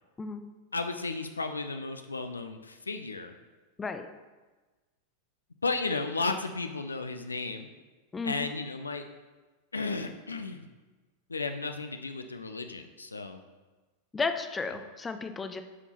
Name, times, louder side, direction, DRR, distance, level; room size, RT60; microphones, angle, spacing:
voice 1, 0.7-3.3 5.6-7.7 8.2-9.1 9.7-10.7 11.3-13.4, left 3 dB, 75° left, 7 dB, 0.5 m, -34 dB
voice 2, 8.1-8.5 14.1-15.6, left 4 dB, 15° left, 8 dB, 0.5 m, -33 dB
9.7 x 5.3 x 3.0 m, 1.2 s
figure-of-eight pair, 90°, 0 cm